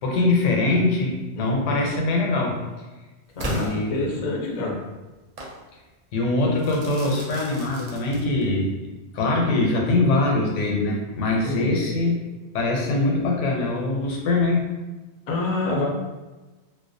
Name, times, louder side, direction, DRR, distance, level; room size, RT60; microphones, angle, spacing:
voice 1, 0.0-2.6 3.4-4.1 6.1-8.7 9.1-12.2 12.5-14.7, left 2 dB, 85° left, -1 dB, 0.9 m, -23 dB
voice 2, 3.4-4.7 11.4-11.7 15.3-15.8, left 2 dB, 55° left, -2 dB, 0.4 m, -27 dB
Crackle / Fireworks, 3.4-4.6 5.4-5.6 6.6-8.6, right 2 dB, 60° right, 0.4 m, -36 dB
2.3 x 2.1 x 2.5 m, 1.2 s
omnidirectional pair, 1.2 m